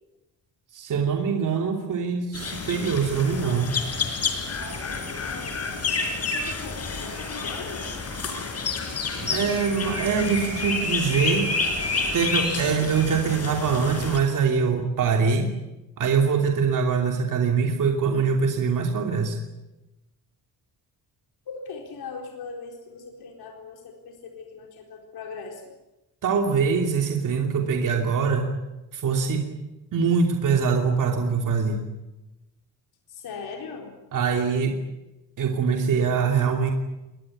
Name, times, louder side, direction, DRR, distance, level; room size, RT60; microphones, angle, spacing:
voice 1, 0.7-3.7 9.1-11.5 12.1-15.5 16.0-19.4 26.2-28.5 28.9-29.5 29.9-31.8 34.1-34.7 35.4-36.7, right 5 dB, 55° right, 3 dB, 3.0 m, -23 dB
sound 1, 2.3-14.2, left 4 dB, 40° left, 4.6 m, -29 dB
voice 2, 4.7-5.7 6.3-7.9 21.5-25.7 33.1-34.0, left 4 dB, 70° left, 2 dB, 4.2 m, -40 dB
23.0 x 20.0 x 10.0 m, 0.99 s
wide cardioid pair, 180°, 38 cm